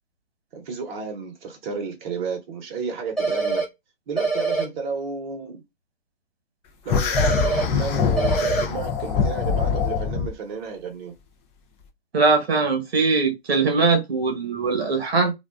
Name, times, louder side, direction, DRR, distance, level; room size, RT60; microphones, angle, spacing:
voice 1, 0.5-3.6 4.1-5.6 6.8-11.1, right 4 dB, 50° right, 0.9 m, -32 dB
sound 1, 3.2-3.6 4.2-4.6 7.2-7.6 8.2-8.6, right 3 dB, ahead, 0.9 m, -23 dB
sound 2, 6.9-10.3, left 6 dB, 20° left, 0.4 m, -23 dB
voice 2, 12.1-15.3, right 4 dB, 80° right, 1.1 m, -21 dB
2.4 x 2.2 x 2.2 m
figure-of-eight pair, 110°, 31 cm